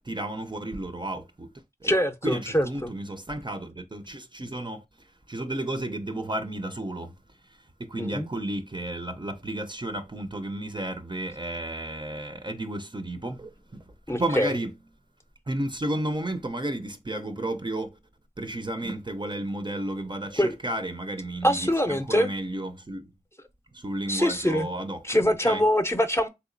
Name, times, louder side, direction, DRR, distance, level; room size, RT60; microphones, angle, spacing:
voice 1, 0.0-1.5 1.8-1.9 2.2-4.8 5.3-7.1 7.8-14.7 15.5-17.9 18.4-23.1 23.7-25.6, right 1 dB, 30° right, 0.5 m, -32 dB
voice 2, 1.8-2.9 8.0-8.3 14.1-14.5 20.4-20.6 21.4-22.3 24.1-24.7 25.0-26.3, equal, 15° left, 0.6 m, -24 dB
3.5 x 2.8 x 2.5 m
wide cardioid pair, 40°, 15 cm